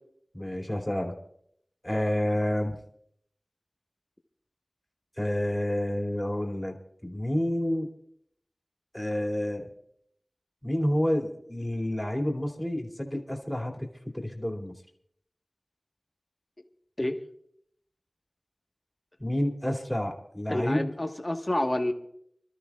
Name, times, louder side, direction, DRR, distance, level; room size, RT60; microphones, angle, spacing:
voice 1, 0.3-1.1 1.8-2.8 5.2-6.8 7.0-7.9 8.9-9.7 10.6-14.7 19.2-20.9, left 1 dB, 10° left, 2.8 m, -29 dB
voice 2, 20.5-21.9, left 1 dB, 30° left, 1.4 m, -28 dB
28.5 x 13.0 x 2.4 m
wide cardioid pair, 50°, 0 cm